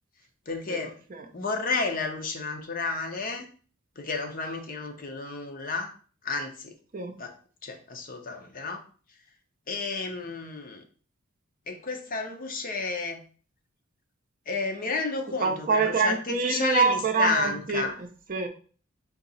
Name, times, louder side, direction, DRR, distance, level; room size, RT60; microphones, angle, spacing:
voice 1, 0.5-1.0 1.3-3.5 4.0-5.9 6.2-6.7 7.2-7.4 7.6-8.9 9.7-10.8 11.7-13.2 14.5-17.9, left 3 dB, 45° left, 4 dB, 0.7 m, -31 dB
voice 2, 15.4-18.5, right 4 dB, 40° right, 6 dB, 0.6 m, -26 dB
3.9 x 2.8 x 4.1 m, 0.40 s
head